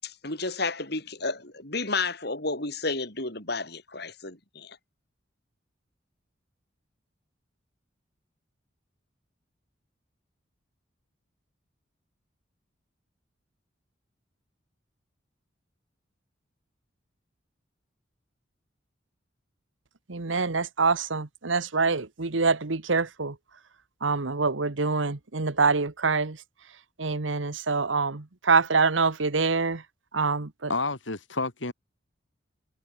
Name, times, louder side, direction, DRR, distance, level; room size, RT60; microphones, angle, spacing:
voice 1, 0.0-4.8, left 3 dB, 55° left, 7.6 m, -31 dB
voice 2, 20.1-23.3 24.0-26.4 27.0-29.8 30.1-30.7, right 4 dB, 85° right, 1.3 m, -25 dB
voice 3, 30.7-31.7, left 3 dB, 80° left, 3.6 m, -29 dB
head